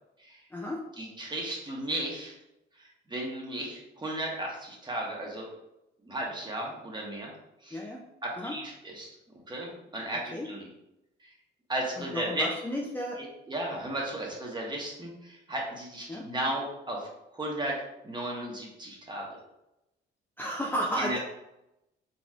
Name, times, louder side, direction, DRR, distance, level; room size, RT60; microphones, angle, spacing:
voice 1, 1.0-2.3 2.8-5.5 6.0-7.3 7.6-7.9 8.2-9.1 9.5-10.7 11.2-11.3 11.7-12.6 13.2-17.8 18.0-19.3 21.0-21.2, right 1 dB, 20° right, -2 dB, 1.1 m, -35 dB
voice 2, 12.1-13.2 16.1-16.2 20.4-21.2, equal, 10° left, -2 dB, 0.4 m, -32 dB
4.0 x 3.0 x 2.4 m, 0.88 s
cardioid pair, 90°, 20 cm